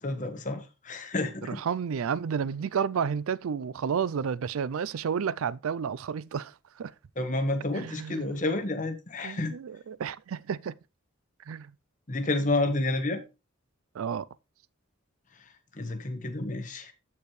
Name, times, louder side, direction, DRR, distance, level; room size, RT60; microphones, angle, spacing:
voice 1, 0.0-1.6 7.2-9.6 12.1-13.2 15.4-16.9, left 2 dB, 35° left, 1.1 m, -30 dB
voice 2, 1.5-6.5 6.8-6.9 7.7-8.3 9.2-10.7 11.5-11.7 13.9-14.3, right 7 dB, 80° right, 0.4 m, -31 dB
13.5 x 4.6 x 3.2 m
head